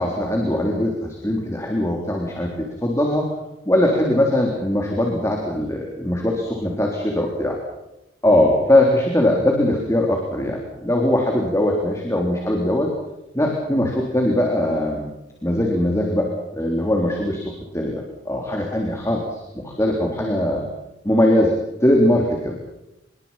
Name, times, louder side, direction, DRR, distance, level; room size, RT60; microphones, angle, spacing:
voice 1, 0.0-2.5 2.8-3.3 3.7-7.6 8.2-12.9 13.3-15.1 15.4-17.4 17.7-20.6 21.0-21.5 21.8-22.6, left 1 dB, 15° left, 0 dB, 3.7 m, -20 dB
27.0 x 22.0 x 5.8 m, 0.90 s
head